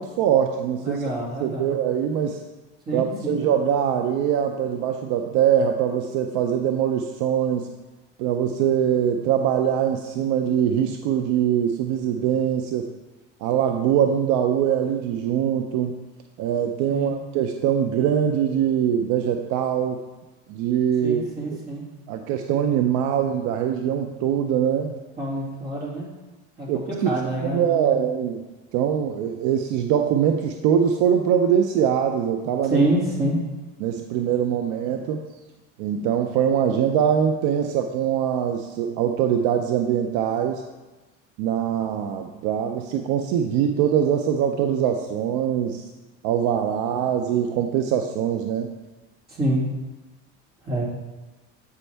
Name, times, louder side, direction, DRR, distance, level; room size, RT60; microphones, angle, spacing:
voice 1, 0.0-1.0 1.4-2.4 2.9-7.7 8.2-12.9 13.4-16.0 16.4-20.0 20.5-21.6 22.1-24.9 26.7-27.1 27.4-28.4 28.7-32.8 33.8-35.2 35.8-40.6 41.4-45.9 46.2-48.7, right 9 dB, 70° right, 5 dB, 0.6 m, -23 dB
voice 2, 0.8-1.8 2.9-3.4 16.9-17.1 21.0-21.8 25.2-26.1 26.6-28.0 32.7-33.4 49.3-49.6 50.7-50.8, right 1 dB, 30° right, -4 dB, 2.4 m, -26 dB
8.2 x 5.2 x 3.4 m, 1.2 s
cardioid pair, 120°, 32 cm